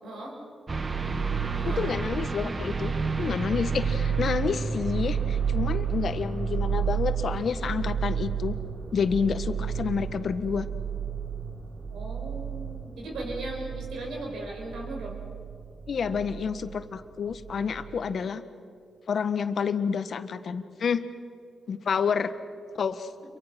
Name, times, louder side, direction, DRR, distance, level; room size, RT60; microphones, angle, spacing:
voice 1, 0.0-0.4 1.6-2.0 11.9-15.2 21.9-22.1, right 1 dB, 80° right, 0 dB, 6.6 m, -37 dB
sound 1, 0.7-16.8 17.3-18.1, right 6 dB, 40° right, 1.3 m, -31 dB
voice 2, 1.7-8.6 8.9-10.7 15.9-18.4 19.1-21.0 21.7-22.3 22.8-23.1, left 6 dB, 65° left, 10 dB, 1.5 m, -29 dB
29.0 x 24.0 x 6.2 m, 2.3 s
supercardioid pair, 55°, 0 cm